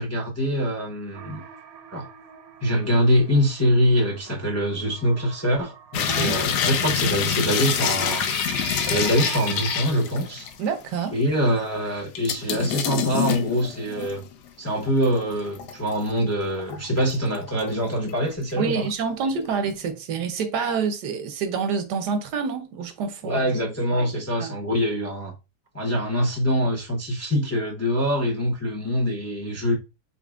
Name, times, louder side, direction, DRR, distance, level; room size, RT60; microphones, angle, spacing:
voice 1, 0.0-1.4 1.9-2.1 2.6-8.3 8.8-10.5 11.1-14.2 14.6-18.9 23.2-25.3 25.7-29.8, equal, 15° left, 0.6 m, -24 dB
sound 1, 1.1-9.8, right 7 dB, 70° right, 1.1 m, -41 dB
sound 2, 5.9-10.7 11.1-11.2 12.2-14.3 14.8-16.1 16.5-17.7 18.1-18.6 18.9-19.0, left 8 dB, 85° left, 1.2 m, -26 dB
voice 2, 6.1-6.4 10.6-11.2 18.6-23.5 23.9-24.1 24.4-24.5, right 5 dB, 90° right, 1.3 m, -27 dB
4.1 x 3.8 x 2.4 m
omnidirectional pair, 1.7 m